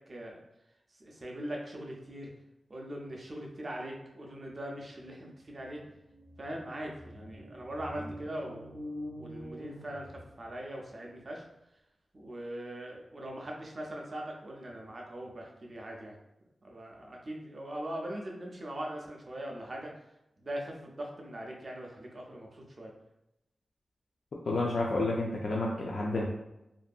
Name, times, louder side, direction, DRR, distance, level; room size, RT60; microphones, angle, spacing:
voice 1, 0.1-0.4 1.0-2.3 2.7-5.8 6.4-8.8 9.2-10.1 10.4-11.4 12.1-16.2 16.6-19.9 20.4-22.9, right 1 dB, 35° right, -1 dB, 0.4 m, -41 dB
sound 1, 5.2-5.3 5.6-10.7, equal, 90° right, 0.6 m, -45 dB
voice 2, 24.5-26.3, left 2 dB, 55° left, -2 dB, 0.3 m, -30 dB
2.5 x 2.5 x 2.3 m, 0.89 s
wide cardioid pair, 170°, 0 cm